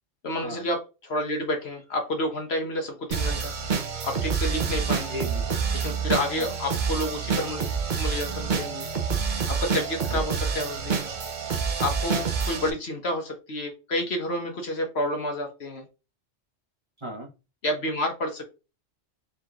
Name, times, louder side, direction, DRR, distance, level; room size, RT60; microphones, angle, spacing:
voice 1, 0.2-3.5 4.0-5.1 5.8-7.7 8.0-8.9 9.4-11.0 11.8-15.9 17.6-18.4, left 1 dB, 60° left, 1.3 m, -29 dB
sound 1, 3.1-12.7, right 6 dB, 50° right, 0.8 m, -27 dB
voice 2, 5.1-5.6 6.4-6.5 10.1-10.2 17.0-17.3, equal, 25° right, 1.1 m, -36 dB
4.5 x 3.7 x 2.4 m
omnidirectional pair, 1.2 m